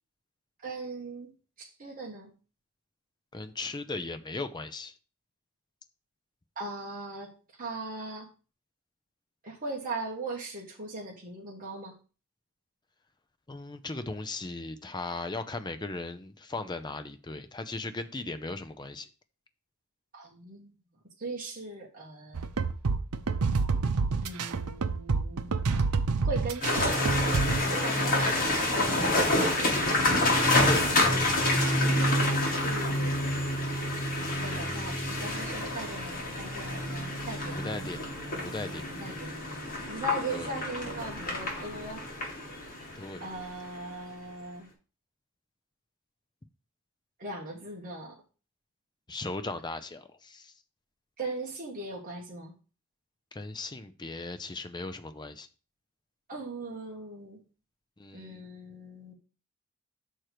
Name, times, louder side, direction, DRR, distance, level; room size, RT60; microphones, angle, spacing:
voice 1, 0.6-1.3 1.6-2.3 6.6-7.3 7.6-8.3 9.4-11.9 20.1-20.7 21.2-22.5 24.2-25.5 26.2-29.0 32.6-33.2 34.4-37.6 38.7-39.3 39.9-42.0 43.2-44.7 47.2-48.2 51.2-52.5 56.3-57.4 58.1-59.1, right 2 dB, 40° right, -2 dB, 1.5 m, -39 dB
voice 2, 3.3-4.9 13.5-19.1 30.2-30.8 37.6-38.0 38.4-38.8 40.3-40.5 43.0-43.3 49.1-50.5 53.3-55.5 58.0-58.4, left 2 dB, 20° left, 10 dB, 0.6 m, -37 dB
sound 1, 22.4-27.6, right 4 dB, 90° right, 0.7 m, -28 dB
sound 2, 26.6-43.8, left 1 dB, 40° left, 2.5 m, -28 dB
6.3 x 4.5 x 6.6 m, 0.35 s
head